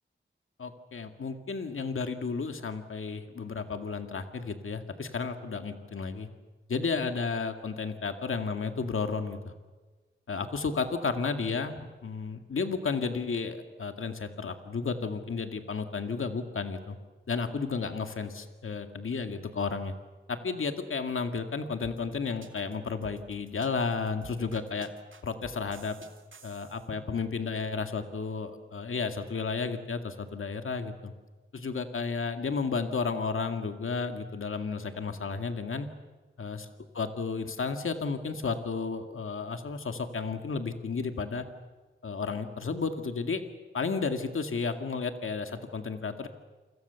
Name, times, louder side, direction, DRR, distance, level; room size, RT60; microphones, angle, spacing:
voice 1, 0.6-6.3 6.7-9.5 10.3-17.0 17.3-19.9 20.3-24.9 25.2-26.0 26.4-31.1 31.5-35.9 36.4-36.7 36.9-41.4 42.0-43.4 43.7-46.3, left 4 dB, 85° left, 6 dB, 2.1 m, -32 dB
sound 1, 21.8-26.9, right 4 dB, 70° right, 2.6 m, -50 dB
29.0 x 25.5 x 7.0 m, 1.3 s
wide cardioid pair, 100°, 21 cm